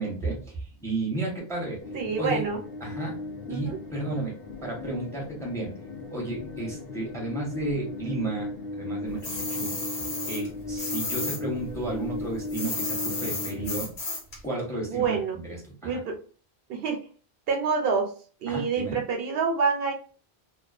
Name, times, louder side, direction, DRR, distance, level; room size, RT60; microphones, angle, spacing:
voice 1, 0.0-1.8 2.2-2.4 2.8-3.2 3.5-5.8 6.1-9.8 10.1-13.9 14.4-16.0 18.5-19.0, right 2 dB, 5° left, -2 dB, 0.7 m, -33 dB
sound 1, 1.8-13.8, left 2 dB, 70° left, 0.8 m, -37 dB
voice 2, 1.9-2.6 3.5-3.8 14.9-15.4 15.8-16.2 16.7-17.0 17.5-18.1 18.4-19.9, right 5 dB, 70° right, 3 dB, 0.8 m, -27 dB
sound 2, 9.2-11.4 11.7-14.4, left 3 dB, 85° left, 1.2 m, -33 dB
2.3 x 2.3 x 2.3 m, 0.40 s
omnidirectional pair, 1.1 m